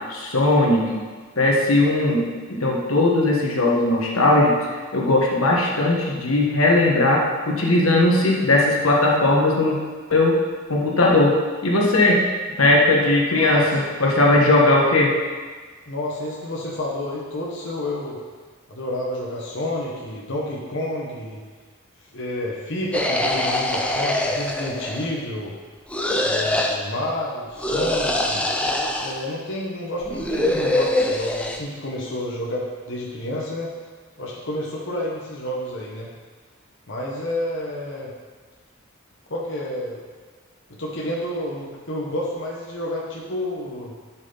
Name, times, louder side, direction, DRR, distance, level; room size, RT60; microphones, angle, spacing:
voice 1, 0.1-1.0 1.3-9.8 10.1-10.4 10.7-11.4 11.6-12.2 12.6-15.1, left 2 dB, 85° left, -2 dB, 1.6 m, -18 dB
voice 2, 13.3-13.7 15.9-18.2 18.7-21.4 22.1-25.5 26.2-28.5 29.0-33.7 34.2-36.1 36.9-38.1 39.3-40.0 40.7-44.0, left 1 dB, 60° left, -4 dB, 1.3 m, -29 dB
sound 1, 22.9-25.2 25.9-26.8 27.6-29.2 30.0-31.6, left 1 dB, 5° left, 0.6 m, -23 dB
12.0 x 6.0 x 4.1 m, 1.5 s
head